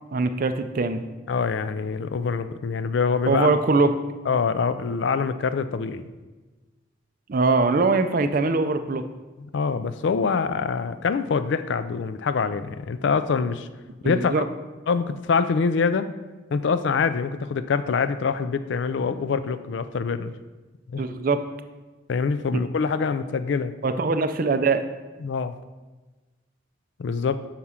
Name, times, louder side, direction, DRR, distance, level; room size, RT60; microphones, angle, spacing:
voice 1, 0.1-1.0 3.3-3.9 7.3-9.0 14.0-14.4 21.0-21.4 23.8-24.8, right 3 dB, 45° right, 9 dB, 0.4 m, -22 dB
voice 2, 1.3-3.5 4.3-6.0 9.4-13.7 14.0-14.4 14.9-16.1 16.5-20.3 20.9-21.0 22.1-23.7 25.2-25.5 27.0-27.4, left 5 dB, 65° left, 12 dB, 0.4 m, -25 dB
5.9 x 4.8 x 5.6 m, 1.2 s
head